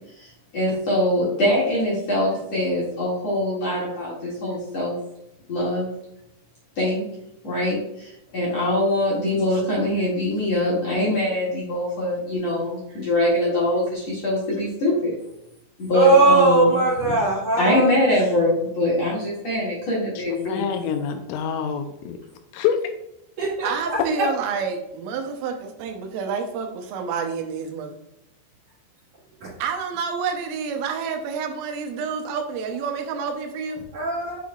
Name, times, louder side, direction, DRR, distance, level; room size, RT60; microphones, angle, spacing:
voice 1, 0.2-4.9 5.5-5.9 6.8-7.0 7.4-15.1 15.8-17.1 17.6-20.6, left 1 dB, 45° left, -8 dB, 2.3 m, -23 dB
voice 2, 15.9-17.9 23.4-23.7 33.9-34.4, right 3 dB, 55° right, -8 dB, 2.5 m, -19 dB
voice 3, 20.2-22.2 22.5-22.8, left 8 dB, 80° left, 6 dB, 3.1 m, -26 dB
voice 4, 23.6-27.9 29.6-33.8, right 6 dB, 80° right, 4 dB, 3.3 m, -29 dB
8.1 x 6.3 x 2.4 m, 0.81 s
omnidirectional pair, 5.9 m